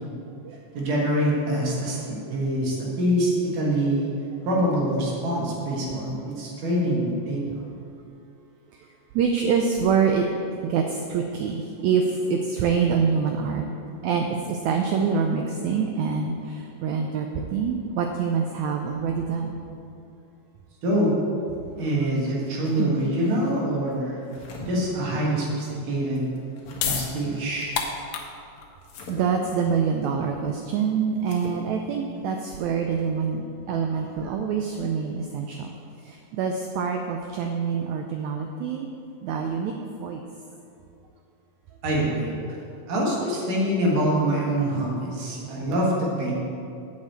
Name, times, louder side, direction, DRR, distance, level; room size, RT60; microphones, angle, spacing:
voice 1, 0.7-2.0 2.3-4.1 4.5-7.4 20.8-21.2 21.8-24.2 24.7-26.3 26.9-27.7 41.8-42.3 42.9-46.3, right 1 dB, 70° right, -4 dB, 3.2 m, -25 dB
voice 2, 9.1-10.3 10.6-13.7 14.0-19.6 22.8-23.0 29.1-35.7 36.0-38.9 39.2-39.7 40.0-40.2, right 6 dB, 85° right, 3 dB, 1.6 m, -25 dB
sound 1, 24.1-24.7 26.2-26.9 28.8-29.2 31.2-31.6, left 3 dB, 60° left, 2.6 m, -42 dB
sound 2, 26.4-33.1, left 7 dB, 90° left, 2.6 m, -34 dB
8.4 x 5.5 x 7.8 m, 2.6 s
omnidirectional pair, 4.0 m